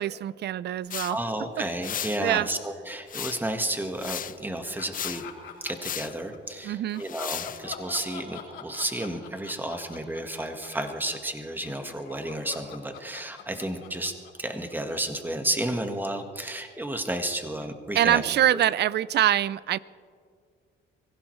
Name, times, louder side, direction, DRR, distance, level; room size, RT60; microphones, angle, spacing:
voice 1, 0.0-1.2 2.2-2.5 6.6-7.0 18.0-19.8, right 12 dB, 60° right, 20 dB, 0.4 m, -24 dB
sound 1, 0.9-1.1 1.8-2.2 3.1-3.5 4.0-4.4 4.9-5.3 5.8-6.1 7.0-7.6, left 9 dB, 45° left, 0.5 m, -34 dB
voice 2, 1.1-5.3 5.6-14.1 14.4-18.2 18.5-18.6, right 1 dB, 10° right, 5 dB, 1.5 m, -32 dB
sound 2, 4.8-6.4 6.9-15.2, left 7 dB, 85° left, 4.7 m, -43 dB
24.0 x 16.0 x 3.2 m, 2.1 s
cardioid pair, 90°, 20 cm